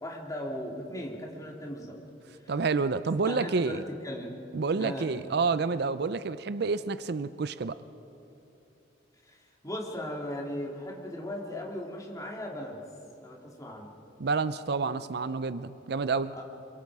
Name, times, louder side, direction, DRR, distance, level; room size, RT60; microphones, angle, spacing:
voice 1, 0.0-2.0 2.4-2.5 3.3-4.4 4.7-5.1 9.3-9.4 9.6-12.8 13.2-13.9 16.3-16.4, left 1 dB, 20° left, -1 dB, 2.7 m, -37 dB
voice 2, 2.5-3.8 4.5-7.8 14.2-16.3, right 4 dB, 60° right, 14 dB, 0.5 m, -29 dB
27.0 x 23.0 x 4.8 m, 2.8 s
head